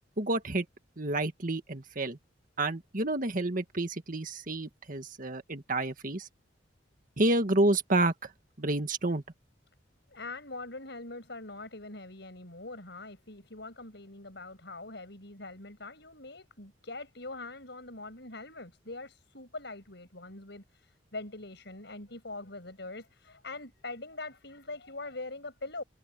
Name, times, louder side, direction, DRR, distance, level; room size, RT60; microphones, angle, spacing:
voice 1, 0.2-0.6 1.0-2.2 2.6-6.3 7.2-8.3 8.6-9.2, right 2 dB, 45° right, 1.7 m, -29 dB
voice 2, 10.1-25.8, left 2 dB, 65° left, 7.9 m, -43 dB
head